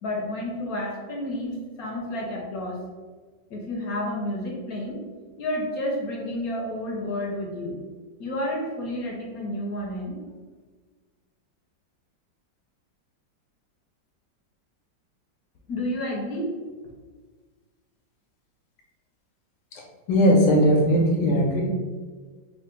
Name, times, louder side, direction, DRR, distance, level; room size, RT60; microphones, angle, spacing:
voice 1, 0.0-2.8 3.5-5.0 5.4-7.8 8.2-10.2 15.7-16.5, left 1 dB, 65° left, -1 dB, 1.0 m, -30 dB
voice 2, 20.1-21.6, equal, 85° left, -1 dB, 1.5 m, -19 dB
3.7 x 2.4 x 3.7 m, 1.4 s
omnidirectional pair, 2.0 m